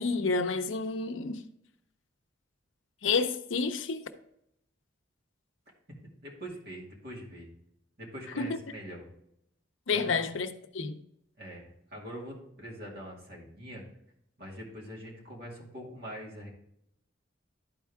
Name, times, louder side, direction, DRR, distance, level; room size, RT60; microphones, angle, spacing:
voice 1, 0.0-1.4 3.0-4.0 8.4-8.6 9.9-11.0, left 4 dB, 75° left, 0.6 m, -30 dB
voice 2, 6.2-7.5 8.0-9.1 9.9-10.3 11.4-13.8 14.4-16.5, equal, 50° right, 2.4 m, -43 dB
11.5 x 4.5 x 3.5 m
head